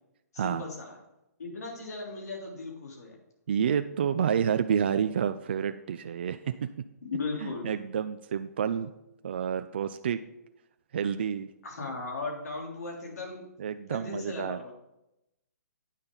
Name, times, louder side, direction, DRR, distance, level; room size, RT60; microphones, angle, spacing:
voice 1, 0.3-0.9 1.4-3.1 7.0-7.7 11.6-13.4 13.9-14.7, left 3 dB, 70° left, 0 dB, 3.3 m, -37 dB
voice 2, 3.5-6.7 7.4-8.9 9.2-10.2 10.9-11.5 13.6-14.6, right 8 dB, 40° right, 10 dB, 0.4 m, -29 dB
9.7 x 8.9 x 3.8 m, 0.90 s
hypercardioid pair, 175°, 9 cm